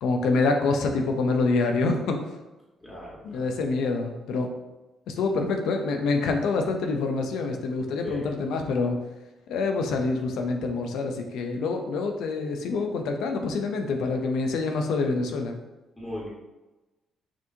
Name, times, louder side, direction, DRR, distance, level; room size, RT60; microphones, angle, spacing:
voice 1, 0.0-2.2 3.2-4.5 5.1-9.0 9.5-15.6, left 3 dB, 85° left, 4 dB, 0.6 m, -26 dB
voice 2, 2.8-3.4 8.0-8.3 16.0-16.3, left 1 dB, 15° left, -6 dB, 1.4 m, -38 dB
5.9 x 2.7 x 2.7 m, 1.1 s
cardioid pair, 90°, 0 cm